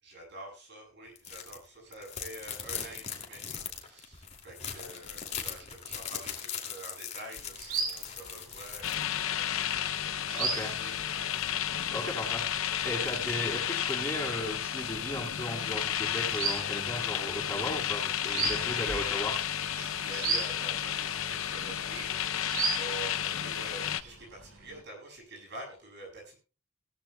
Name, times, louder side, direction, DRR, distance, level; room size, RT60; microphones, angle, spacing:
voice 1, 0.0-11.3 18.5-19.2 19.6-26.3, right 2 dB, 55° right, -1 dB, 7.9 m, -47 dB
sound 1, 1.1-1.6 1.9-9.0, left 8 dB, 30° left, 2.6 m, -40 dB
sound 2, 7.3-24.8, right 4 dB, 80° right, 3.7 m, -39 dB
sound 3, 8.8-24.0, left 10 dB, 75° left, 0.7 m, -32 dB
voice 2, 10.4-10.7 11.9-19.3, left 1 dB, 10° left, -4 dB, 7.7 m, -36 dB
19.0 x 15.0 x 2.3 m, 0.35 s
head